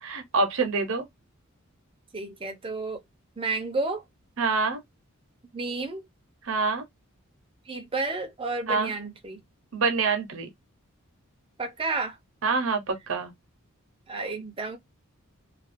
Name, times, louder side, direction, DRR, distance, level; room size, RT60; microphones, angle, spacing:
voice 1, 0.0-1.0 4.4-4.8 6.5-6.8 8.7-8.9 9.7-10.5 12.4-13.3, right 4 dB, 65° right, 0.8 m, -26 dB
voice 2, 2.1-3.0 3.4-4.0 5.5-6.1 7.6-9.4 11.6-12.2 14.1-14.8, right 3 dB, 25° right, 0.6 m, -31 dB
2.4 x 2.3 x 2.5 m
head